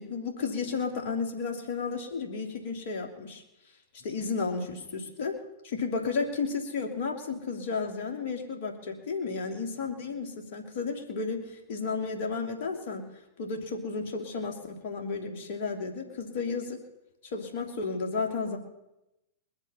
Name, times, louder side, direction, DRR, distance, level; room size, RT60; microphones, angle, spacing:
voice 1, 0.0-3.4 3.9-5.4 5.6-13.0 13.4-16.8 17.3-18.6, left 4 dB, 55° left, 3 dB, 2.7 m, -33 dB
21.0 x 10.5 x 5.6 m, 0.92 s
hypercardioid pair, 105°, 0 cm